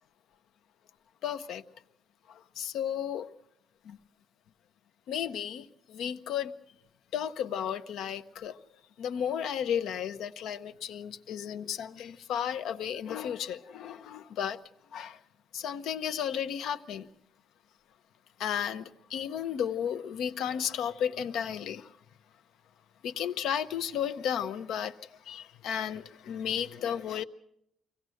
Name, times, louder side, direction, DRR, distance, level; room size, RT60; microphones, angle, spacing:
voice 1, 1.2-1.6 2.3-3.3 3.8-4.0 5.1-6.5 7.1-8.6 9.0-14.6 14.9-15.2 15.5-17.1 18.4-21.9 23.0-27.2, left 9 dB, 80° left, 0.7 m, -33 dB
24.0 x 17.0 x 6.4 m
cardioid pair, 170°, 0 cm